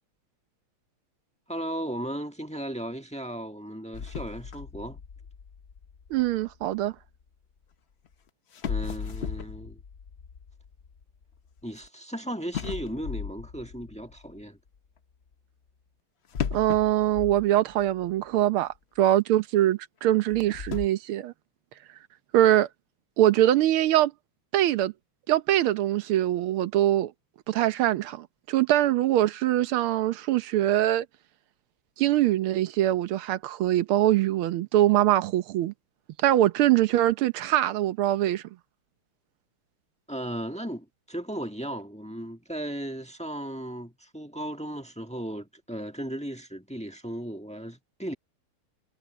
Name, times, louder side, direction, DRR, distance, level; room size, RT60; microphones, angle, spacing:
voice 1, 1.5-5.0 8.6-9.8 11.6-14.6 40.1-48.1, right 1 dB, 5° left, 1.1 m, -36 dB
sound 1, 3.9-7.1 8.0-8.1 8.5-11.9 12.5-14.4 16.3-18.1 18.4-18.5 19.1-19.2 20.2-20.9, left 7 dB, 85° left, 0.5 m, -36 dB
voice 2, 6.1-6.9 16.5-21.3 22.3-22.7 23.2-24.1 24.5-24.9 25.3-27.1 27.5-31.0 32.0-35.7 36.2-38.4, right 13 dB, 80° right, 1.7 m, -23 dB
omnidirectional pair, 2.4 m